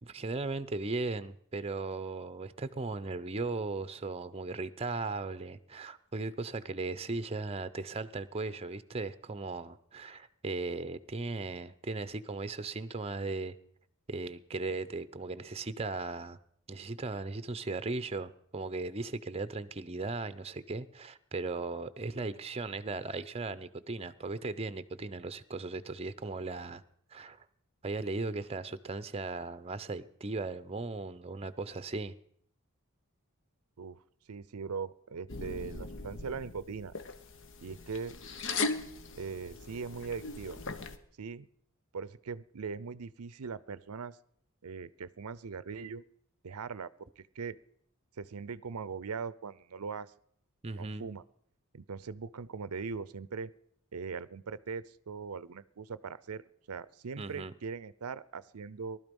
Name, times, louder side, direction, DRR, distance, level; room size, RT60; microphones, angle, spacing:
voice 1, 0.0-13.6 14.1-16.4 16.7-26.8 27.1-27.4 27.8-32.2 50.6-51.1 57.2-57.5, right 3 dB, 30° right, 13 dB, 0.6 m, -37 dB
voice 2, 34.3-36.9 37.6-38.1 39.2-40.6 41.2-41.5 41.9-44.2 44.6-46.0 46.4-47.6 48.2-50.1 50.8-51.2 51.7-53.5 53.9-56.4 56.7-59.0, right 5 dB, 90° right, 18 dB, 0.6 m, -40 dB
sound 1, 35.3-41.0, left 3 dB, 60° left, 1.1 m, -39 dB
19.0 x 12.5 x 5.3 m, 0.68 s
head